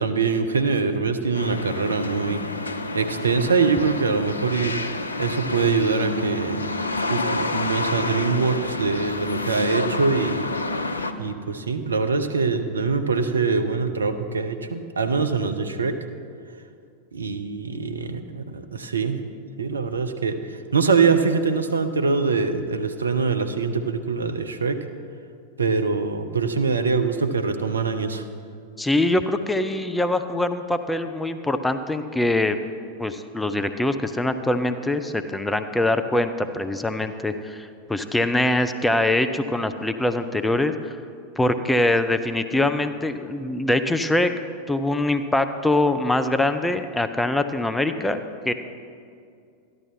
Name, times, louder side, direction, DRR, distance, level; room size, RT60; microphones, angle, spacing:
voice 1, 0.0-2.4 2.9-4.7 5.2-10.4 11.2-15.9 17.1-19.2 19.6-24.8 25.6-28.3, right 4 dB, 75° right, 8 dB, 0.7 m, -23 dB
sound 1, 1.3-11.1, left 2 dB, 75° left, 0.5 m, -28 dB
voice 2, 28.8-32.6 33.0-40.9 41.4-44.3 44.7-48.2 48.4-48.5, left 1 dB, 5° left, 9 dB, 0.6 m, -23 dB
13.5 x 11.0 x 4.3 m, 2.4 s
figure-of-eight pair, 90°, 0 cm